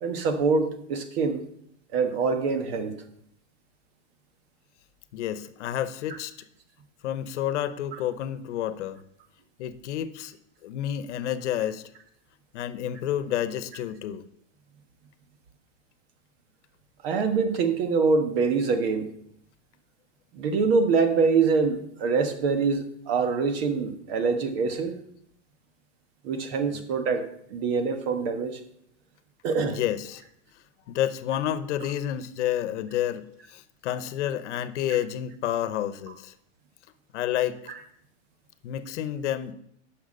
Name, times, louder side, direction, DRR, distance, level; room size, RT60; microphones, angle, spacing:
voice 1, 0.0-1.4 1.9-3.0 7.9-8.0 17.0-19.1 20.3-25.0 26.2-28.6 29.4-29.8, right 4 dB, 55° right, 7 dB, 1.5 m, -25 dB
voice 2, 5.1-6.3 7.0-9.0 9.6-10.4 10.6-11.8 12.5-14.3 26.7-26.8 29.7-30.2 30.9-36.3 37.1-37.6 38.6-39.5, left 11 dB, 75° left, 13 dB, 0.9 m, -30 dB
10.5 x 6.0 x 5.4 m, 0.70 s
supercardioid pair, 160°, 36 cm